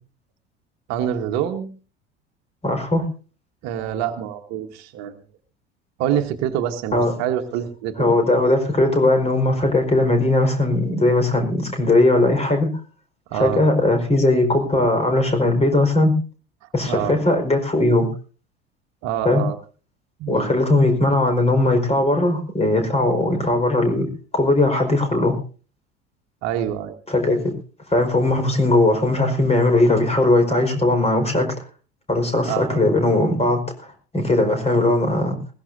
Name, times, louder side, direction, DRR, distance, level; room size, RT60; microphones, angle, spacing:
voice 1, 0.9-1.7 3.6-5.2 6.0-8.2 13.3-13.6 16.9-17.2 19.0-19.6 20.2-20.5 26.4-27.0 32.5-32.8, right 10 dB, 50° right, 6 dB, 1.5 m, -26 dB
voice 2, 2.6-3.0 6.9-7.1 8.0-12.7 13.4-16.1 16.7-18.1 19.2-19.4 20.3-24.1 24.3-25.3 27.1-27.5 27.9-31.5 32.1-35.4, left 2 dB, 20° left, 5 dB, 4.8 m, -19 dB
20.5 x 17.0 x 2.7 m, 0.38 s
figure-of-eight pair, 70°, 34 cm